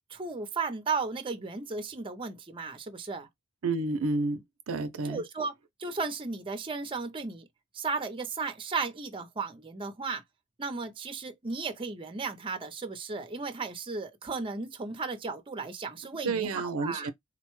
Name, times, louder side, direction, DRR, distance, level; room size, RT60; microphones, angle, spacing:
voice 1, 0.1-3.3 5.0-5.5 5.8-7.5 7.7-10.2 10.6-17.1, right 4 dB, 25° right, 0.5 m, -35 dB
voice 2, 3.6-5.2 16.2-17.1, right 3 dB, 70° right, 0.5 m, -30 dB
3.9 x 2.1 x 3.0 m
head